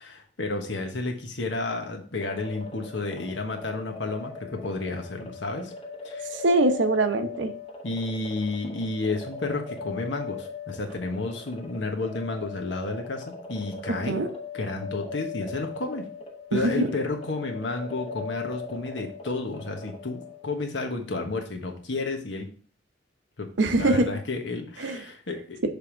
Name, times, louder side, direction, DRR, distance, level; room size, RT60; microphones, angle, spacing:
voice 1, 0.0-5.7 6.0-6.3 7.8-14.3 14.5-16.1 16.5-22.5 23.4-23.5 23.8-25.6, left 3 dB, 75° left, 4 dB, 1.2 m, -31 dB
sound 1, 2.2-20.6, left 4 dB, 30° left, 1.0 m, -39 dB
voice 2, 6.3-7.5 14.1-14.3 16.5-16.9 23.6-24.1 24.8-25.0, right 2 dB, 85° right, 7 dB, 0.8 m, -23 dB
6.8 x 3.5 x 4.5 m, 0.42 s
head